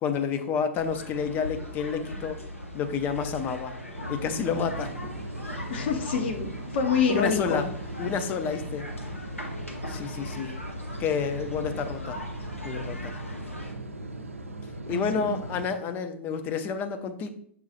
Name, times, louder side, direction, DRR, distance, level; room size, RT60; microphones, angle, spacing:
voice 1, 0.0-2.4 2.7-3.8 4.1-4.9 7.1-7.7 8.0-8.9 9.9-10.5 11.0-12.2 12.6-13.1 14.9-17.3, left 6 dB, 25° left, 8 dB, 0.5 m, -29 dB
sound 1, 0.7-13.7, left 1 dB, 90° left, 0.8 m, -39 dB
sound 2, 3.9-15.7, right 2 dB, 85° right, 0.4 m, -39 dB
voice 2, 5.7-7.6 14.9-15.3, left 6 dB, 55° left, 5 dB, 0.8 m, -27 dB
5.6 x 2.3 x 4.0 m, 0.63 s
figure-of-eight pair, 105°, 7 cm